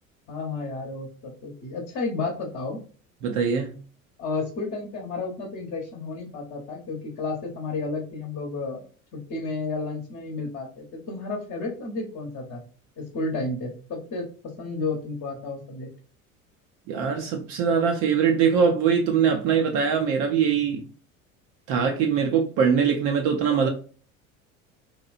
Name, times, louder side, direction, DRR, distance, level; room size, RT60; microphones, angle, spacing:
voice 1, 0.3-2.8 4.2-8.8 9.1-12.6 13.0-14.2 14.6-15.9, left 3 dB, 35° left, 0.9 m, -32 dB
voice 2, 3.2-3.8 16.9-20.8 21.7-23.7, right 6 dB, 45° right, 0.5 m, -22 dB
2.8 x 2.3 x 2.4 m
figure-of-eight pair, 70°, 42 cm